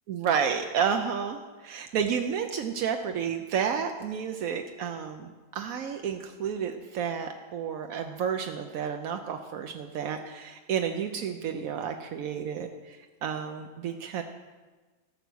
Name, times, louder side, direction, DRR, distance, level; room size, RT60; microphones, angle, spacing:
voice 1, 0.1-14.2, right 7 dB, 85° right, 5 dB, 1.1 m, -31 dB
14.5 x 6.9 x 6.2 m, 1.3 s
omnidirectional pair, 1.4 m